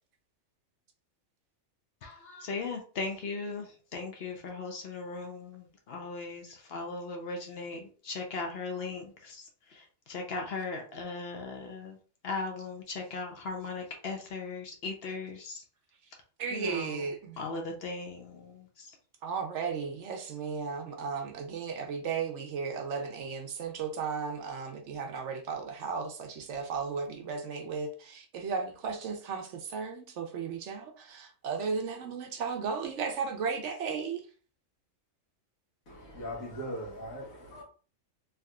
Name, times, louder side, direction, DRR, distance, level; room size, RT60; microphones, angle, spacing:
voice 1, 2.0-9.4 9.7-12.0 12.2-15.6 16.5-17.0 17.4-18.9, left 3 dB, 60° left, 0.7 m, -38 dB
voice 2, 16.4-17.4 19.2-34.2, right 5 dB, 70° right, 0.8 m, -35 dB
voice 3, 35.9-37.6, equal, 80° left, 1.5 m, -40 dB
3.5 x 2.7 x 2.3 m
omnidirectional pair, 1.4 m